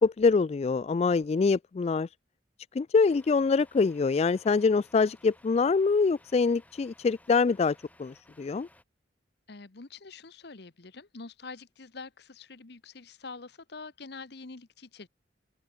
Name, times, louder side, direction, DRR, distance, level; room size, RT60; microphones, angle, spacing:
voice 1, 0.0-2.1 2.8-8.7, left 4 dB, 35° left, 0.3 m, -25 dB
Truck, 3.0-8.8, left 1 dB, 10° left, 4.8 m, -59 dB
voice 2, 9.5-15.1, left 4 dB, 60° left, 1.1 m, -45 dB
open air
head